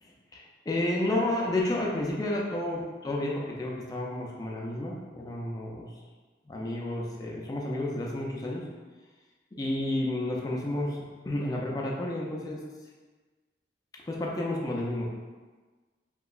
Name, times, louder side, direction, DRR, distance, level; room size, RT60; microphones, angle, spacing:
voice 1, 0.0-5.9 6.4-8.6 9.6-12.6 14.1-15.1, left 1 dB, 20° left, -2 dB, 0.4 m, -31 dB
3.0 x 2.7 x 2.4 m, 1.4 s
head